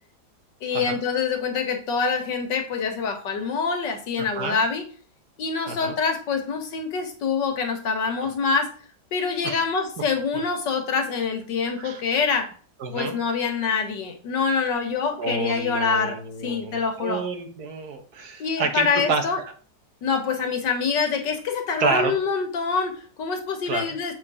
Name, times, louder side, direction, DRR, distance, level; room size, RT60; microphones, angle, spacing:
voice 1, 0.6-4.8 5.4-8.7 9.1-12.5 12.9-17.2 18.4-19.4 20.0-24.1, left 5 dB, 85° left, 5 dB, 2.0 m, -25 dB
voice 2, 4.2-4.6 5.7-6.0 8.2-8.3 9.4-9.6 11.8-12.0 12.8-13.2 15.2-19.5 21.8-22.2 23.7-24.0, right 4 dB, 65° right, 6 dB, 1.6 m, -29 dB
7.6 x 4.6 x 4.8 m, 0.42 s
omnidirectional pair, 1.9 m